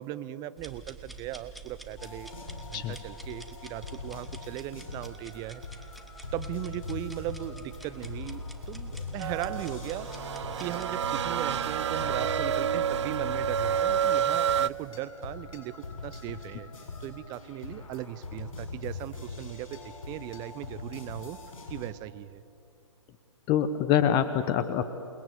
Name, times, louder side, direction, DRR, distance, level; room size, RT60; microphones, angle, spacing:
voice 1, 0.0-5.6 6.3-10.1 10.6-16.7 17.0-19.8 20.1-21.4 21.7-22.4, right 15 dB, 25° right, 14 dB, 0.7 m, -38 dB
sound 1, 0.6-11.0, right 3 dB, ahead, 1.2 m, -48 dB
sound 2, 2.0-21.9, left 4 dB, 75° left, 7.1 m, -41 dB
sound 3, 9.2-14.7, right 9 dB, 55° right, 0.6 m, -29 dB
voice 2, 23.5-24.8, left 9 dB, 25° left, 11 dB, 0.9 m, -25 dB
28.5 x 19.5 x 8.1 m, 2.6 s
figure-of-eight pair, 130°, 17 cm